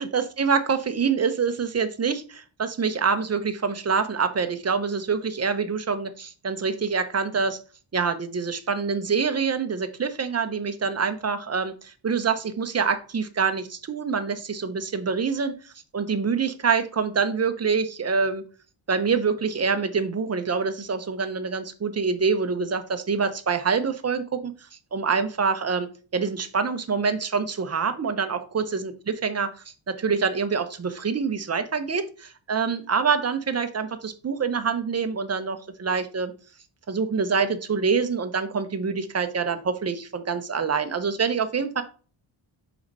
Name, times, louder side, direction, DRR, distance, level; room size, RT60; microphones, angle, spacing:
voice 1, 0.0-7.6 7.9-18.4 18.9-24.5 24.9-29.5 29.9-36.3 36.9-41.8, right 5 dB, 30° right, 9 dB, 0.9 m, -26 dB
5.6 x 5.3 x 4.1 m, 0.37 s
wide cardioid pair, 115°, 47 cm